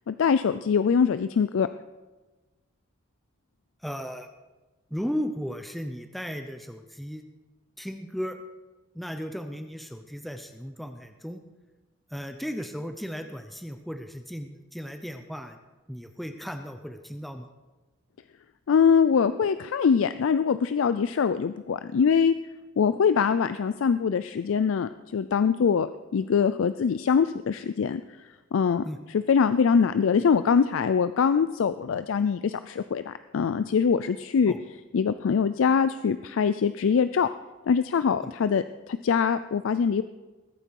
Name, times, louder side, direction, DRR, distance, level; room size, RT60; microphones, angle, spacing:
voice 1, 0.1-1.7 18.7-22.3 22.8-28.0 28.5-34.5 34.9-37.3 37.7-40.0, left 6 dB, 65° left, 12 dB, 0.4 m, -23 dB
voice 2, 3.8-4.3 4.9-7.2 7.8-8.4 8.9-11.4 12.1-15.6 15.9-17.5 28.8-29.0 34.5-34.6 38.2-38.3, equal, ahead, 6 dB, 0.6 m, -35 dB
20.5 x 9.0 x 4.7 m, 1.2 s
head